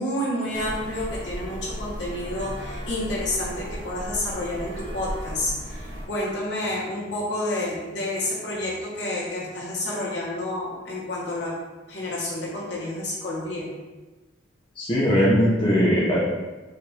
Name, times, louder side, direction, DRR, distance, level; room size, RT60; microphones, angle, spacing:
voice 1, 0.0-11.5 11.9-13.7, left 1 dB, 60° left, -5 dB, 1.1 m, -29 dB
sound 1, 0.5-6.1, equal, 85° right, 0.7 m, -35 dB
voice 2, 14.8-16.3, equal, 25° left, -7 dB, 0.6 m, -20 dB
4.6 x 2.5 x 3.2 m, 1.2 s
head